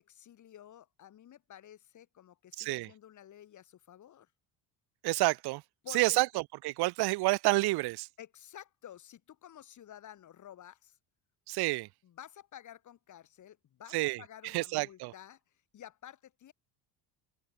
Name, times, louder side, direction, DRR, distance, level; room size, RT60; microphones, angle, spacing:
voice 1, 0.0-4.3 5.8-6.2 8.2-11.0 12.0-15.4 15.7-16.5, left 11 dB, 50° left, 8.0 m, -52 dB
voice 2, 2.6-2.9 5.0-5.6 5.9-8.1 11.5-11.9 13.9-15.1, right 21 dB, 80° right, 1.6 m, -29 dB
open air
cardioid pair, 130°, 38 cm